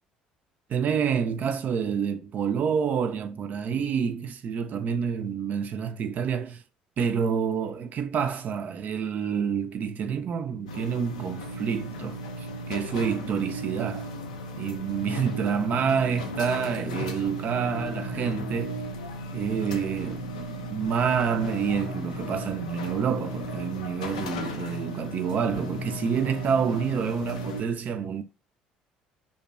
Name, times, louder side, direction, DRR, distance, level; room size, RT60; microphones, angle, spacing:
voice 1, 0.7-6.6 7.0-14.1 14.6-18.8 19.3-28.2, right 7 dB, 50° right, 0.4 m, -28 dB
sound 1, 10.7-27.6, equal, 90° left, 0.3 m, -35 dB
2.6 x 2.1 x 2.4 m
hypercardioid pair, 60°, 4 cm